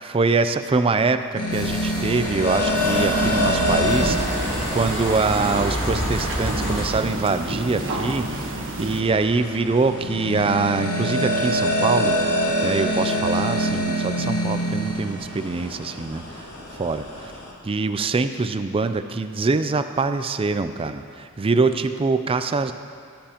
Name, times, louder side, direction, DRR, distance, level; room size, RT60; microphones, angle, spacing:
voice 1, 0.0-12.2 12.6-17.3 17.6-22.7, right 4 dB, 25° right, 9 dB, 0.4 m, -24 dB
sound 1, 1.4-17.5, equal, 80° left, 2.0 m, -26 dB
sound 2, 1.5-6.9, equal, 15° left, 3.1 m, -29 dB
sound 3, 3.9-9.0, right 1 dB, 60° right, 1.2 m, -30 dB
17.5 x 10.5 x 2.9 m, 2.2 s
head